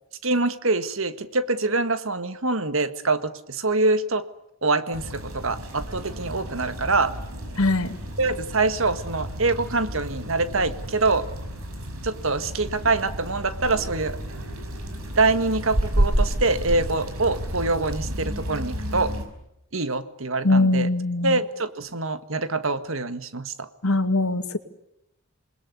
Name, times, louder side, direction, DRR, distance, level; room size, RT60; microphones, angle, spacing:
voice 1, 0.2-4.2 4.6-7.1 8.2-11.3 12.0-14.2 15.2-19.1 19.7-20.9 21.2-23.7, right 3 dB, 70° right, 12 dB, 1.7 m, -25 dB
sound 1, 4.9-19.2, right 1 dB, 90° right, 5.5 m, -31 dB
voice 2, 7.6-8.0 20.4-21.4 23.8-24.6, left 2 dB, 90° left, 9 dB, 2.2 m, -21 dB
27.5 x 21.0 x 9.6 m, 0.86 s
head